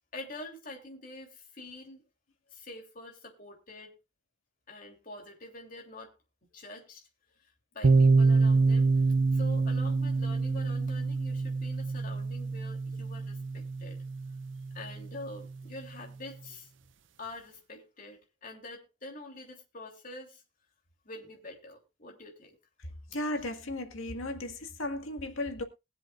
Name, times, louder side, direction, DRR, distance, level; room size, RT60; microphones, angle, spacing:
voice 1, 0.1-2.0 2.5-3.9 4.7-6.1 6.5-7.1 7.4-9.0 9.3-14.0 14.7-16.7 17.2-20.4 21.0-22.6, left 2 dB, 40° left, 3.2 m, -46 dB
sound 1, 7.8-15.5, right 3 dB, 65° right, 0.6 m, -26 dB
voice 2, 23.1-25.6, left 1 dB, 85° left, 1.8 m, -35 dB
21.5 x 7.7 x 2.5 m
head